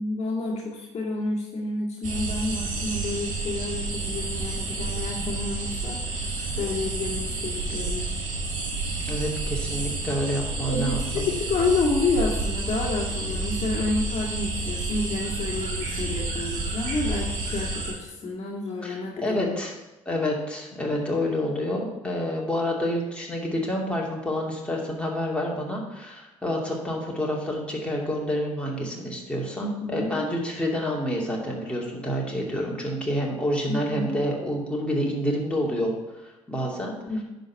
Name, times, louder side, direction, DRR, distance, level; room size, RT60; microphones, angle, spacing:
voice 1, 0.0-6.2 6.6-8.1 10.7-19.6 29.6-30.3 33.7-34.1 37.1-37.2, left 3 dB, 40° left, -3 dB, 1.9 m, -29 dB
sound 1, 2.0-17.9, right 3 dB, 55° right, 2.2 m, -30 dB
voice 2, 9.0-11.3 18.8-19.7 20.1-36.9, equal, 5° left, -3 dB, 2.5 m, -28 dB
10.5 x 4.0 x 5.6 m, 1.0 s
figure-of-eight pair, 50°, 16 cm